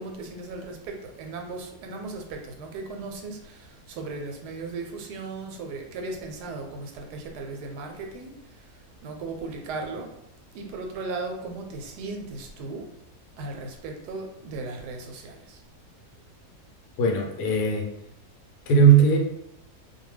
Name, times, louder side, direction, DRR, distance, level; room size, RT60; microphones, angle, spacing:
voice 1, 0.0-10.1 10.5-12.9 13.4-15.6, right 3 dB, 85° right, 2 dB, 1.1 m, -37 dB
voice 2, 17.0-17.9 18.7-19.2, right 5 dB, 75° left, 1 dB, 1.0 m, -18 dB
2.5 x 2.2 x 3.2 m, 0.81 s
omnidirectional pair, 1.7 m